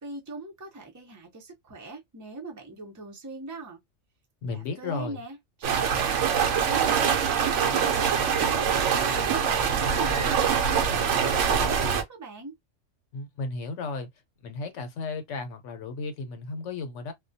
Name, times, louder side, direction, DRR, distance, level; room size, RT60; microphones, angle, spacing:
voice 1, 0.0-3.8 4.5-8.7 9.1-12.5, right 3 dB, 20° right, 0.6 m, -41 dB
voice 2, 4.4-5.2 13.1-14.1 14.4-17.1, left 3 dB, 80° left, 1.0 m, -34 dB
sound 1, 5.6-12.0, right 7 dB, 75° right, 0.9 m, -24 dB
2.3 x 2.2 x 2.6 m
omnidirectional pair, 1.3 m